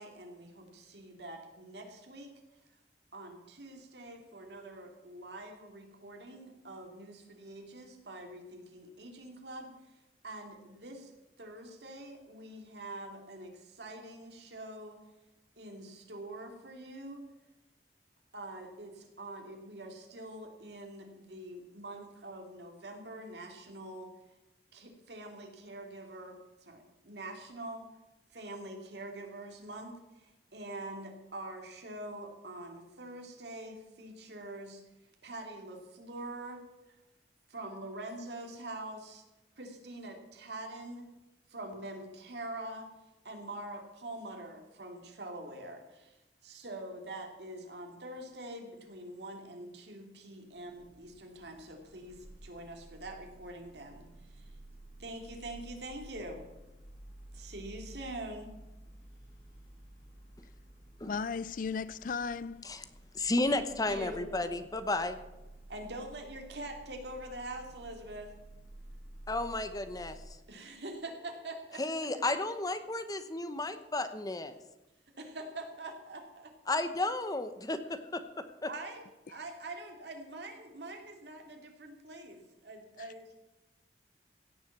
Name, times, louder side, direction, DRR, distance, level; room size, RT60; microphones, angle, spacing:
voice 1, 0.0-2.3 3.1-9.7 10.2-11.1 11.4-15.0 15.6-17.2 18.3-24.1 24.7-27.8 28.3-34.8 35.2-37.0 37.5-39.2 39.6-41.1 41.5-42.9 43.2-54.5 55.0-56.5 57.3-58.5 63.5-64.5 65.7-68.3 70.5-72.2 75.2-76.8 78.7-79.0 79.3-83.3, right 1 dB, 75° right, 2.7 m, -45 dB
sound 1, 50.6-70.2, right 1 dB, 65° left, 5.0 m, -52 dB
voice 2, 61.1-62.8 83.0-83.1, left 5 dB, 50° left, 0.4 m, -36 dB
voice 3, 63.1-65.2 69.3-70.2 71.8-74.6 76.7-78.4, left 2 dB, 20° left, 0.9 m, -33 dB
16.5 x 7.3 x 7.3 m
head